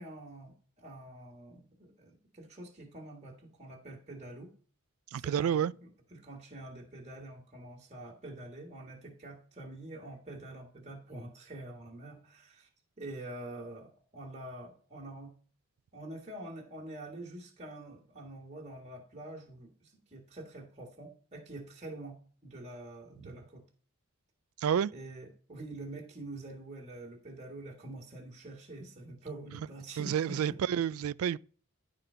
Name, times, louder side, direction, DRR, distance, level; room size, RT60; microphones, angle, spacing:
voice 1, 0.0-4.5 5.1-12.7 13.0-15.3 15.9-23.6 24.9-30.8, right 2 dB, 30° right, 1.6 m, -46 dB
voice 2, 5.1-5.7 24.6-24.9 30.0-31.4, right 8 dB, 75° right, 0.3 m, -29 dB
11.0 x 3.8 x 5.5 m
head